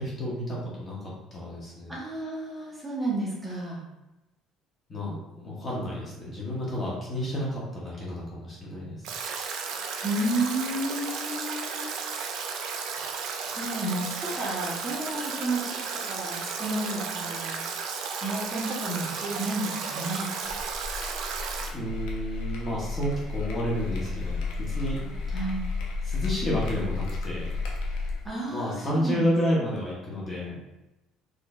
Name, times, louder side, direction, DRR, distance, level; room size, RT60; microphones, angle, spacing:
voice 1, 0.0-1.9 4.9-9.1 21.7-25.0 26.0-27.7 28.5-30.6, equal, 25° left, -5 dB, 0.9 m, -31 dB
voice 2, 1.9-3.8 10.0-11.9 13.5-17.9 18.2-20.3 25.3-25.6 28.2-29.2, right 1 dB, 5° right, -6 dB, 1.0 m, -32 dB
Stream / Drip / Trickle dribble, 9.0-21.7, right 5 dB, 65° right, 0.5 m, -34 dB
sound 1, 20.4-28.3, left 3 dB, 75° left, 0.8 m, -32 dB
4.2 x 3.1 x 2.4 m, 0.98 s
cardioid pair, 150°, 0 cm